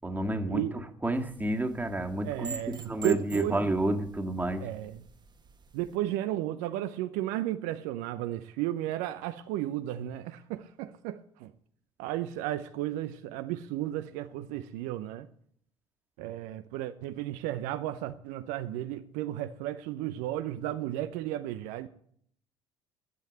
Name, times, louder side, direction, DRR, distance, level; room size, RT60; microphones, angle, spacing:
voice 1, 0.0-4.7, right 1 dB, 10° right, 1.8 m, -30 dB
sound 1, 1.1-6.0, right 5 dB, 30° right, 1.4 m, -47 dB
voice 2, 2.2-3.6 4.6-5.0 5.7-11.5 12.0-15.3 16.2-21.9, right 13 dB, 65° right, 0.7 m, -34 dB
11.5 x 8.5 x 8.1 m
hypercardioid pair, 55°, 14 cm